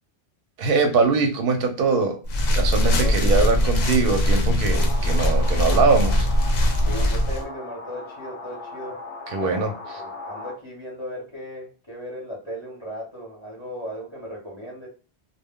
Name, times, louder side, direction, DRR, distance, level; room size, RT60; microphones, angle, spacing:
voice 1, 0.6-2.2 2.5-6.3 9.3-9.7, right 4 dB, 60° right, 5 dB, 0.7 m, -22 dB
sound 1, 2.2-7.4, equal, 55° left, 0.5 m, -21 dB
sound 2, 4.7-10.5, left 3 dB, 80° left, 0.9 m, -38 dB
voice 2, 6.8-9.0 9.3-9.5 10.0-14.9, equal, 25° left, -3 dB, 0.9 m, -36 dB
2.1 x 2.1 x 3.5 m, 0.36 s
omnidirectional pair, 1.2 m